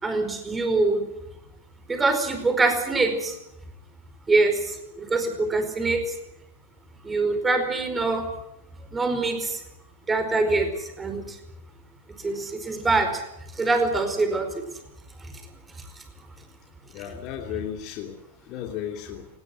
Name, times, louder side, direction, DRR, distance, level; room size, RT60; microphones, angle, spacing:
voice 1, 0.0-1.0 1.9-3.3 4.3-6.0 7.0-8.3 8.9-9.6 10.1-11.4 12.2-13.2 13.6-14.5, right 3 dB, 15° right, 7 dB, 4.9 m, -24 dB
voice 2, 16.9-18.2 18.4-19.3, left 10 dB, 45° left, 3 dB, 2.9 m, -34 dB
19.5 x 16.5 x 9.6 m, 0.86 s
hypercardioid pair, 120°, 0 cm